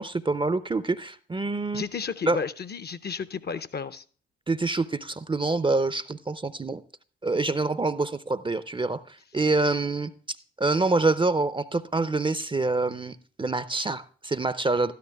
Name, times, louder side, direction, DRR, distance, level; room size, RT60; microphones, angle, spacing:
voice 1, 0.0-1.8 2.3-2.4 4.5-6.8 7.2-14.9, right 3 dB, 15° right, 0.5 m, -26 dB
voice 2, 1.7-4.0, left 5 dB, 35° left, 0.6 m, -32 dB
13.0 x 11.5 x 2.3 m
hypercardioid pair, 40°, 29 cm